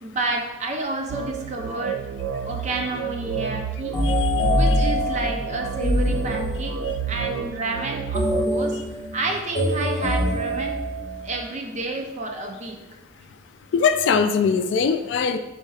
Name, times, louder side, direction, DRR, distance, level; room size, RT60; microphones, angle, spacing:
voice 1, 0.0-2.0 2.4-4.0 4.5-6.8 7.1-8.8 9.1-10.8 11.2-12.8, right 2 dB, 40° right, 2 dB, 0.6 m, -30 dB
sound 1, 1.1-8.5, right 8 dB, 90° right, 0.4 m, -31 dB
sound 2, 3.9-6.9 8.1-11.4, equal, 25° left, 1.3 m, -24 dB
voice 2, 13.7-15.4, left 5 dB, 70° left, 9 dB, 0.3 m, -21 dB
4.8 x 4.1 x 2.3 m, 1.1 s
head